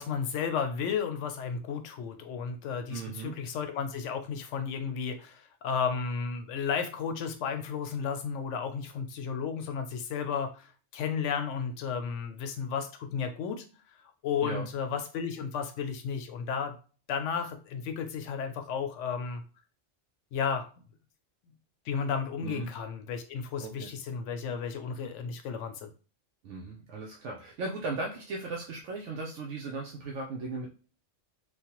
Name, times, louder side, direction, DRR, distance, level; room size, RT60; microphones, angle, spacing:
voice 1, 0.0-13.6 14.2-16.8 17.1-19.4 20.3-20.7 21.9-25.9, left 6 dB, 80° left, 7 dB, 0.9 m, -33 dB
voice 2, 2.9-3.4 14.4-14.7 22.4-22.7 23.6-23.9 26.4-30.7, right 3 dB, 75° right, -1 dB, 0.9 m, -37 dB
3.0 x 2.1 x 2.9 m, 0.36 s
omnidirectional pair, 1.3 m